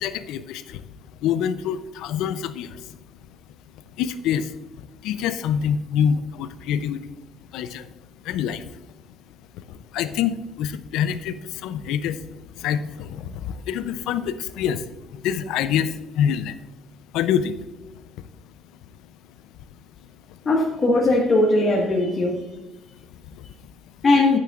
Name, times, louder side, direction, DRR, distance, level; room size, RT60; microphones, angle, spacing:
voice 1, 0.0-3.4 3.7-16.7 17.0-20.4 22.7-24.0, left 8 dB, 75° left, 13 dB, 0.6 m, -28 dB
voice 2, 20.5-22.4 24.0-24.4, left 2 dB, 45° left, -2 dB, 1.7 m, -19 dB
10.5 x 9.2 x 2.5 m, 1.1 s
supercardioid pair, 65°, 0 cm